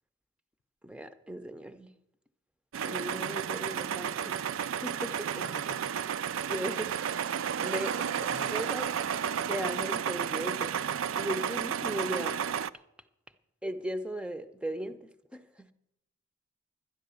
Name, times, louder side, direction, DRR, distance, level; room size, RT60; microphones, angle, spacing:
voice 1, 0.8-1.9 2.8-4.4 4.8-5.5 6.4-7.0 7.6-8.9 9.5-10.7 11.2-12.4 13.6-15.7, right 1 dB, 5° right, 0.5 m, -37 dB
sound 1, 2.7-12.7, right 8 dB, 75° right, 0.4 m, -32 dB
voice 2, 5.4-5.9 7.6-8.6, left 4 dB, 65° left, 0.6 m, -46 dB
11.5 x 10.5 x 6.8 m
head